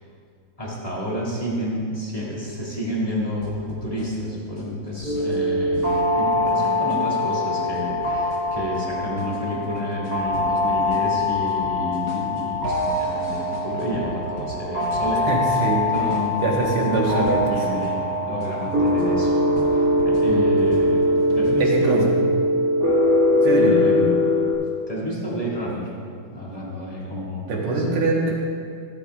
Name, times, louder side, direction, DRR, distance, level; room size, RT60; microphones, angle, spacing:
voice 1, 0.6-5.9 6.1-16.4 16.9-19.4 19.6-22.1 23.5-24.5 24.9-25.9 26.3-28.0, equal, 15° left, -6 dB, 1.9 m, -30 dB
sound 1, 3.4-17.9 18.4-21.9, left 2 dB, 70° left, 2.1 m, -40 dB
sound 2, 5.0-24.5, left 1 dB, 40° right, 2.0 m, -22 dB
voice 2, 15.3-15.9 16.4-17.8 21.6-22.1 23.4-24.2 27.5-28.3, right 3 dB, 85° right, -1 dB, 2.3 m, -23 dB
13.0 x 12.0 x 2.4 m, 2.2 s
omnidirectional pair, 2.4 m